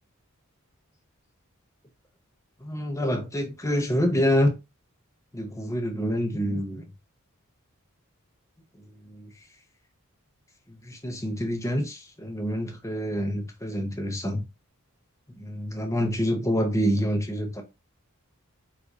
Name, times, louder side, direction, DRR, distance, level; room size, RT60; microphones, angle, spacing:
voice 1, 2.6-4.5 5.3-6.9 8.9-9.3 10.7-14.4 15.4-17.6, equal, 15° left, 0.6 m, -27 dB
4.6 x 2.2 x 2.6 m
head